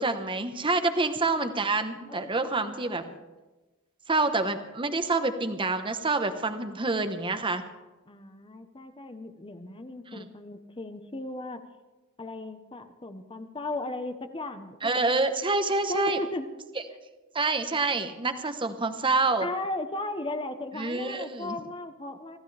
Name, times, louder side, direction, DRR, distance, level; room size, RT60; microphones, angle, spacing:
voice 1, 0.0-3.1 4.1-7.6 10.1-10.3 14.8-16.2 17.3-19.5 20.7-21.6, right 3 dB, 25° right, 8 dB, 1.0 m, -27 dB
voice 2, 2.1-3.2 6.6-6.8 8.1-11.6 12.2-15.1 15.9-16.5 19.4-22.4, left 2 dB, 25° left, 8 dB, 0.9 m, -36 dB
26.0 x 14.0 x 3.4 m, 1.2 s
head